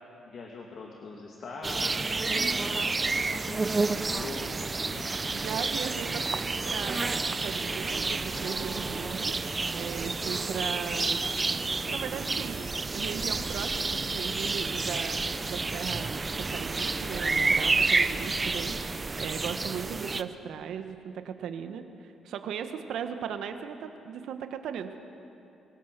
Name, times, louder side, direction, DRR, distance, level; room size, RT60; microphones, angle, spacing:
voice 1, 0.3-5.2, left 3 dB, 55° left, 0 dB, 2.4 m, -42 dB
sound 1, 1.6-20.2, right 3 dB, 25° right, 0.8 m, -30 dB
voice 2, 5.3-9.4 9.7-11.3 11.8-12.7 12.9-25.0, right 8 dB, 75° right, 8 dB, 1.4 m, -38 dB
24.5 x 17.0 x 6.8 m, 3.0 s
cardioid pair, 90°, 0 cm